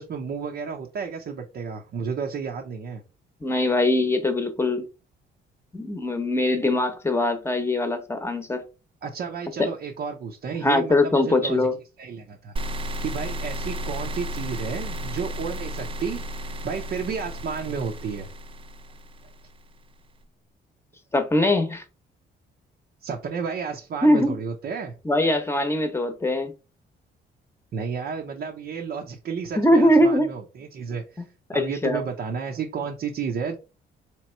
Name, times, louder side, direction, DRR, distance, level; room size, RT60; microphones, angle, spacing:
voice 1, 0.0-3.0 9.0-11.7 12.0-12.5 13.0-18.3 23.0-24.9 27.7-31.2 31.5-33.6, right 6 dB, 55° right, 0.7 m, -32 dB
voice 2, 3.4-4.8 5.7-8.6 9.6-9.7 10.6-11.7 21.1-21.8 24.0-24.3 25.0-26.5 29.6-30.3 31.5-32.0, left 1 dB, 10° left, 0.9 m, -21 dB
sound 1, 12.6-19.7, equal, 30° right, 0.4 m, -33 dB
3.5 x 3.0 x 4.3 m
cardioid pair, 90°, 20 cm